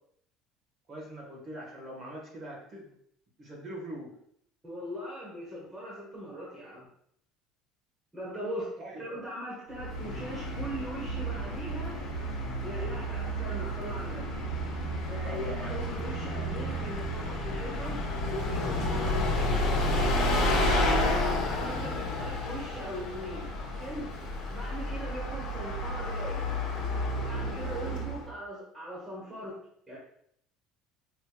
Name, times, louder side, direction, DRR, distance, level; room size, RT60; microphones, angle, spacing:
voice 1, 0.9-2.9 3.4-4.1 8.8-9.0 15.2-16.0 21.7-22.0, right 1 dB, 30° right, -2 dB, 1.3 m, -42 dB
voice 2, 4.6-6.9 8.1-12.0 12.6-14.2 15.1-18.0 18.3-20.8 21.4-24.1 24.5-26.5 27.2-29.5 29.9-30.0, equal, 10° right, -7 dB, 0.9 m, -40 dB
Bus, 9.7-28.3, left 1 dB, 50° left, 1.2 m, -31 dB
5.2 x 3.2 x 2.3 m, 0.69 s
cardioid pair, 170°, 0 cm